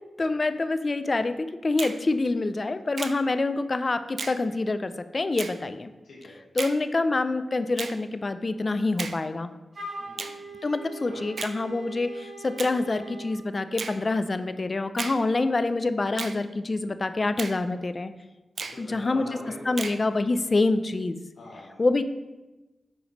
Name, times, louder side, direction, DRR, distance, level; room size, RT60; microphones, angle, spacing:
voice 1, 0.2-5.9 6.5-9.5 10.6-18.1 18.8-19.3 19.6-21.2 21.8-22.0, left 3 dB, 45° left, 11 dB, 0.4 m, -26 dB
Finger snapping, 1.8-2.0 3.0-3.2 4.2-4.4 5.4-5.6 6.6-6.8 7.8-8.0 9.0-9.2 10.2-10.4 11.4-11.6 12.6-12.8 13.8-14.0 15.0-15.2 16.2-16.4 17.4-17.6 18.6-18.8 19.8-20.0, right 4 dB, 65° right, 0.4 m, -34 dB
voice 2, 6.0-6.4 10.0-10.4 11.1-11.2 18.7-19.7 21.4-21.8, left 2 dB, 80° left, -7 dB, 1.3 m, -43 dB
Wind instrument woodwind instrument, 9.7-13.4, right 2 dB, 45° right, 1.2 m, -41 dB
7.8 x 3.2 x 5.2 m, 1.1 s
cardioid pair, 45°, 0 cm